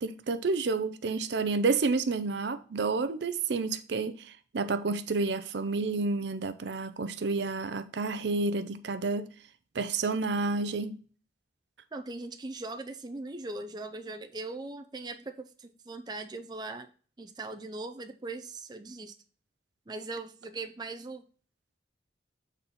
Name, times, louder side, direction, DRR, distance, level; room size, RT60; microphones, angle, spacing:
voice 1, 0.0-9.3 9.7-11.0, right 3 dB, 70° right, 0.5 m, -30 dB
voice 2, 11.9-16.9 17.2-19.1 19.9-21.2, right 3 dB, 20° right, 0.5 m, -40 dB
7.1 x 4.1 x 4.2 m
head